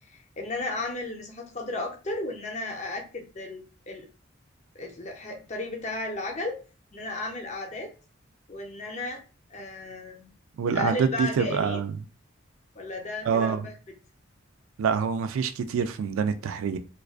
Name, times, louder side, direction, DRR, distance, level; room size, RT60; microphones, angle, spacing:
voice 1, 0.0-4.1 4.7-6.6 6.9-7.9 8.5-9.2 9.5-10.3 10.7-11.8 12.7-13.7, left 2 dB, 35° left, 0.5 m, -34 dB
voice 2, 10.6-11.9 13.3-13.7 14.8-16.8, right 6 dB, 85° right, 0.3 m, -26 dB
2.3 x 2.3 x 2.4 m
head